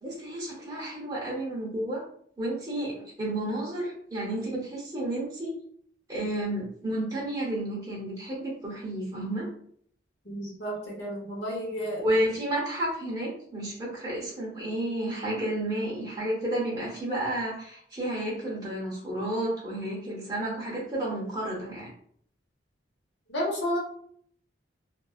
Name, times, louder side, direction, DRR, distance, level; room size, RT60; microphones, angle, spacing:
voice 1, 0.0-2.0 2.4-5.5 6.1-9.5 12.0-21.9, right 1 dB, 20° right, -6 dB, 0.8 m, -31 dB
voice 2, 10.2-12.0 23.3-23.8, equal, 70° left, -3 dB, 0.9 m, -31 dB
2.5 x 2.2 x 2.3 m, 0.62 s
head